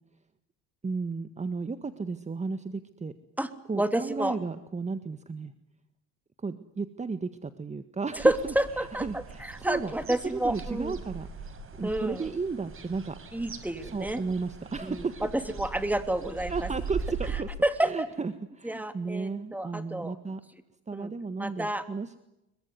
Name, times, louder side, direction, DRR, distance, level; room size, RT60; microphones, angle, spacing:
voice 1, 0.8-3.1 3.7-5.5 6.4-9.9 10.3-11.5 11.8-13.2 13.9-15.1 16.5-17.5 17.8-20.4 20.9-22.2, right 4 dB, 20° right, 11 dB, 1.8 m, -34 dB
voice 2, 3.4-4.4 8.2-11.0 11.8-12.3 13.3-14.2 14.8-16.7 17.6-18.1 18.6-20.1 20.9-21.1 21.4-21.9, right 1 dB, 5° right, 9 dB, 3.1 m, -29 dB
sound 1, 8.2-17.4, right 5 dB, 45° right, 5.7 m, -40 dB
26.0 x 23.5 x 9.7 m, 0.90 s
supercardioid pair, 90°, 31 cm